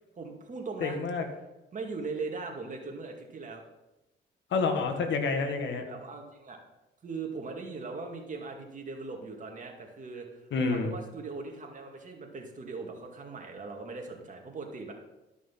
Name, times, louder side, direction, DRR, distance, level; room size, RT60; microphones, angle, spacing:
voice 1, 0.2-1.0 1.7-3.6 5.9-6.6 7.0-14.9, right 4 dB, 40° right, 1 dB, 2.2 m, -40 dB
voice 2, 0.8-1.2 4.5-5.9 10.5-10.9, left 4 dB, 70° left, 5 dB, 1.7 m, -28 dB
11.5 x 6.1 x 5.8 m, 0.97 s
cardioid pair, 90°, 20 cm